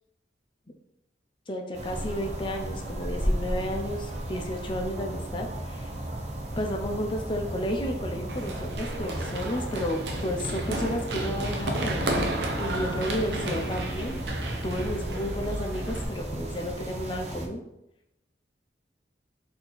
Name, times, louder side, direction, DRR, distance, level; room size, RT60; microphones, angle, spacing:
voice 1, 1.5-5.9 6.6-12.3 12.6-14.2 14.6-17.6, equal, 30° left, 2 dB, 0.6 m, -32 dB
sound 1, 1.7-17.5, right 1 dB, 35° right, 0.7 m, -35 dB
Run, 8.3-16.0, right 1 dB, 70° right, 0.6 m, -32 dB
4.1 x 2.9 x 4.0 m, 0.84 s
head